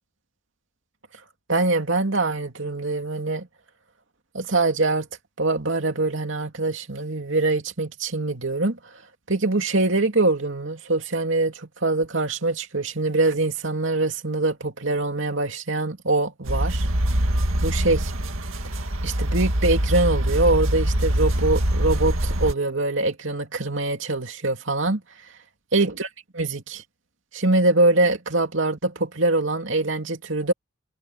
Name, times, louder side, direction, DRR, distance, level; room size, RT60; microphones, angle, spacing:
voice 1, 1.5-3.5 4.3-5.1 5.4-8.8 9.3-16.9 17.6-18.1 19.0-25.0 25.7-26.1 26.3-26.8 27.3-30.5, right 2 dB, 65° right, 2.9 m, -23 dB
sound 1, 16.5-22.5, right 1 dB, 85° right, 2.1 m, -23 dB
head